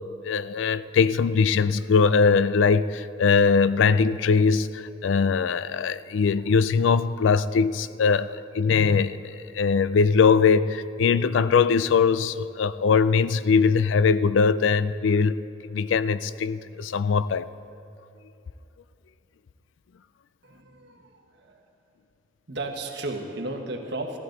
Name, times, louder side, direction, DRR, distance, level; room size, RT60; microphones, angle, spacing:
voice 1, 0.2-15.4 15.7-17.5, left 5 dB, 75° left, 15 dB, 0.4 m, -21 dB
voice 2, 20.4-21.6 22.5-24.2, right 2 dB, 60° right, 3 dB, 1.3 m, -34 dB
16.0 x 14.0 x 3.9 m, 2.6 s
head